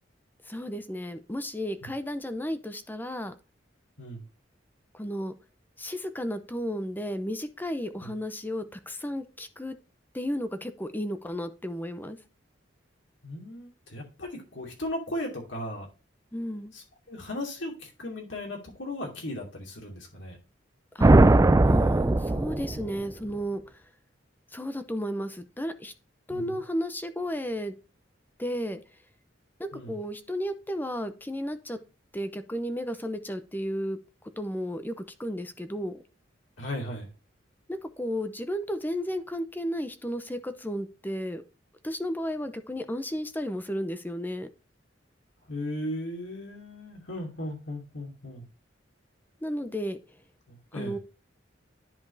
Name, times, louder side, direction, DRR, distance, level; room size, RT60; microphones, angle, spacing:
voice 1, 0.5-3.3 4.9-5.3 5.8-9.8 10.1-12.2 16.3-16.7 20.9-23.6 24.5-25.9 26.3-27.7 28.4-28.8 29.6-31.8 32.1-34.0 34.4-36.0 37.7-41.4 41.8-44.5 49.4-50.0 50.7-51.0, equal, 10° left, 9 dB, 0.7 m, -33 dB
voice 2, 13.2-15.9 16.7-20.4 26.3-26.6 29.7-29.9 36.6-37.1 45.5-48.5 50.5-51.0, left 1 dB, 80° left, 0 dB, 2.7 m, -37 dB
sound 1, 21.0-23.1, right 2 dB, 15° right, 0.4 m, -19 dB
10.5 x 5.2 x 2.7 m, 0.32 s
head